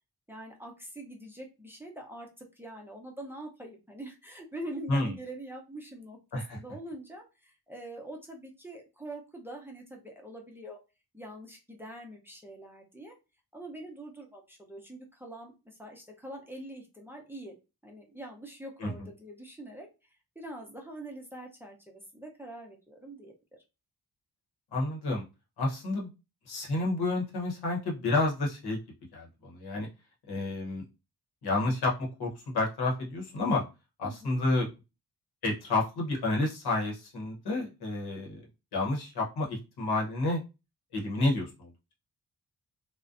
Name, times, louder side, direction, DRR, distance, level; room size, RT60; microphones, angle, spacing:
voice 1, 0.3-10.8 11.1-13.1 13.5-17.6 17.8-19.9 20.4-23.6 34.0-34.4, right 1 dB, 5° right, 0 dB, 0.5 m, -44 dB
voice 2, 24.7-25.2 25.6-26.1 26.5-28.8 29.1-29.9 30.3-30.8 31.4-33.6 34.0-34.7 35.4-38.4 38.7-40.4 40.9-41.7, left 2 dB, 90° left, -1 dB, 0.9 m, -30 dB
2.4 x 2.1 x 2.4 m, 0.27 s
wide cardioid pair, 105°, 37 cm